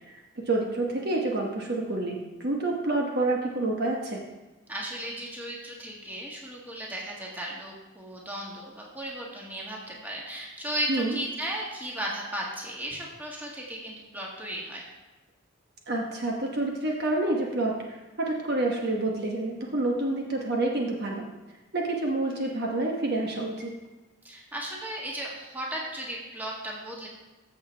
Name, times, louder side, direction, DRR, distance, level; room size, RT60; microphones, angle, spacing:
voice 1, 0.1-4.2 10.9-11.2 15.9-21.3 21.7-23.7, right 2 dB, 50° right, 0 dB, 1.1 m, -28 dB
voice 2, 4.7-14.9 24.2-27.1, right 1 dB, 10° right, -3 dB, 1.7 m, -35 dB
14.0 x 6.8 x 3.3 m, 1.1 s
head